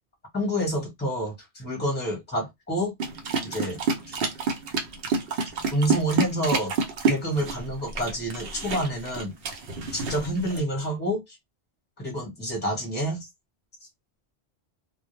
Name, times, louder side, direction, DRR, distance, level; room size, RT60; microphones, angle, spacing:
voice 1, 0.3-2.9 3.4-3.8 5.7-6.7 7.1-9.3 9.9-11.4 12.0-13.3, equal, 10° left, 0.9 m, -28 dB
sound 1, 3.0-10.6, right 4 dB, 65° right, 0.8 m, -29 dB
2.1 x 2.1 x 3.0 m
omnidirectional pair, 1.1 m